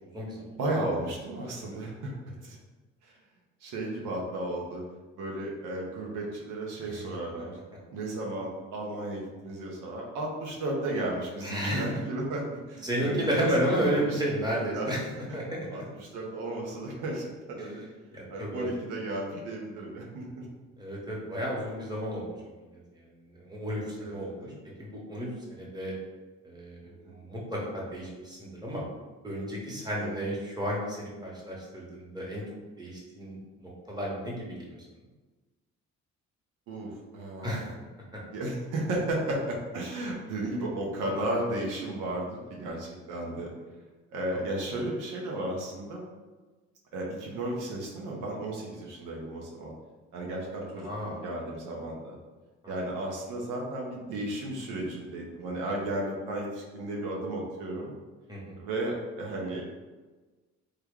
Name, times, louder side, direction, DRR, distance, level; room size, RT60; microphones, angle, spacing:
voice 1, 0.0-0.5 1.5-1.7 6.8-7.1 11.4-11.9 12.8-15.0 15.3-15.8 17.6-17.7 18.1-18.7 20.8-22.3 22.7-23.0 23.3-24.5 24.8-25.9 26.4-28.8 29.2-32.4 32.8-34.8 37.4-37.7 50.8-51.2 52.6-52.7 58.3-58.6, equal, 15° right, -4 dB, 1.0 m, -32 dB
voice 2, 0.6-2.1 2.4-2.6 3.0-3.1 3.6-4.8 5.2-7.6 7.9-14.2 14.7-14.9 15.3-15.4 15.7-15.8 16.1-17.8 18.3-20.5 24.0-24.6 26.8-27.1 30.0-30.1 36.7-37.7 38.3-43.5 44.1-46.0 46.9-49.7 50.1-52.2 52.7-57.9 58.6-59.6, right 1 dB, 90° right, -2 dB, 0.8 m, -34 dB
3.2 x 2.2 x 3.6 m, 1.3 s
cardioid pair, 90°, 30 cm